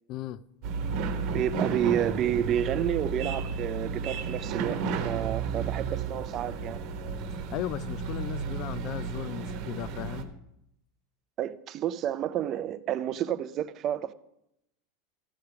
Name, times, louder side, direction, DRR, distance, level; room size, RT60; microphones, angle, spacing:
voice 1, 0.1-0.4 7.3-10.3, left 13 dB, 40° left, 0.3 m, -36 dB
sound 1, 0.6-10.2, right 5 dB, 45° right, 1.1 m, -33 dB
voice 2, 1.3-6.8 11.4-14.1, right 10 dB, 30° right, 0.4 m, -30 dB
14.0 x 5.0 x 5.8 m
supercardioid pair, 165°, 0 cm